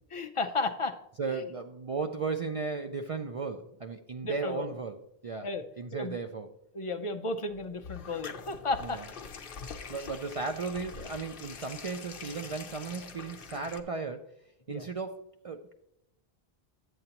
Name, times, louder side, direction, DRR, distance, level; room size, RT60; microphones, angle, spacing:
voice 1, 0.1-1.0 1.3-1.4 4.2-4.7 5.4-5.6 5.9-6.1 6.7-9.0 9.9-10.0 14.7-14.8, left 3 dB, 40° left, 7 dB, 0.5 m, -33 dB
voice 2, 1.2-5.0 5.2-5.5 5.8-6.5 8.8-9.0 9.9-14.3 14.7-15.7, right 4 dB, 60° right, 6 dB, 0.3 m, -35 dB
sound 1, 7.5-13.8, left 5 dB, 60° left, 0.9 m, -44 dB
10.5 x 7.8 x 2.9 m, 0.83 s
omnidirectional pair, 1.1 m